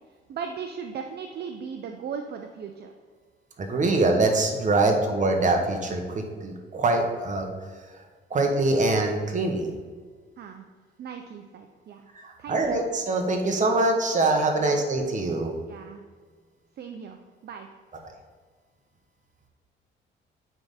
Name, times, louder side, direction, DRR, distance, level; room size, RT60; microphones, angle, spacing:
voice 1, 0.3-2.9 10.4-10.7 11.0-12.1 12.4-12.8 14.6-14.8 15.7-16.0 16.8-17.7, right 6 dB, 55° right, 5 dB, 0.5 m, -38 dB
voice 2, 3.6-7.5 7.9-8.0 8.3-9.7 12.1-15.5, right 2 dB, 40° right, 3 dB, 1.2 m, -24 dB
8.9 x 3.6 x 4.1 m, 1.5 s
cardioid pair, 90°, 20 cm